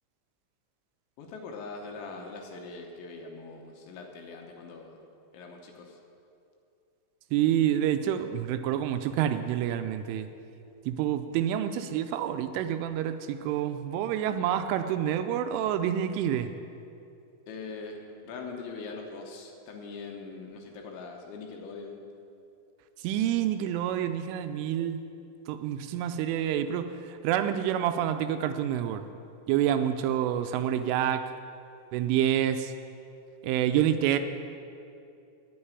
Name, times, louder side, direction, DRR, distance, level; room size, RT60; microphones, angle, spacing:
voice 1, 1.2-5.0 5.3-6.0 17.5-22.0, left 4 dB, 75° left, 1 dB, 3.2 m, -42 dB
voice 2, 7.3-10.3 10.9-16.5 23.0-25.0 25.5-29.1 29.5-31.3 31.9-32.7 33.4-34.2, right 10 dB, 85° right, 8 dB, 3.0 m, -28 dB
9.4 x 8.8 x 9.6 m, 2.6 s
omnidirectional pair, 5.8 m